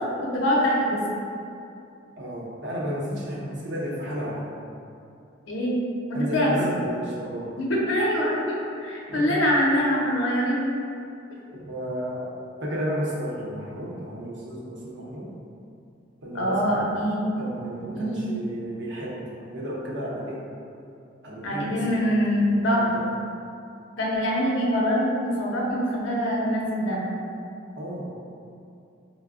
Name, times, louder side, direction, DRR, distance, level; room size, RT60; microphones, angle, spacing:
voice 1, 0.2-1.0 5.5-5.8 6.1-6.7 7.6-8.5 8.8-10.7 16.3-17.2 17.9-18.3 21.4-22.9 24.0-27.0, equal, 85° left, -4 dB, 0.6 m, -24 dB
voice 2, 2.2-4.5 6.1-7.6 9.1-9.4 11.5-12.3 12.6-15.3 16.2-16.7 17.4-20.4 21.2-22.0 22.3-23.0 27.8-28.1, equal, 65° right, -5 dB, 0.7 m, -33 dB
4.7 x 2.0 x 2.3 m, 2.6 s
head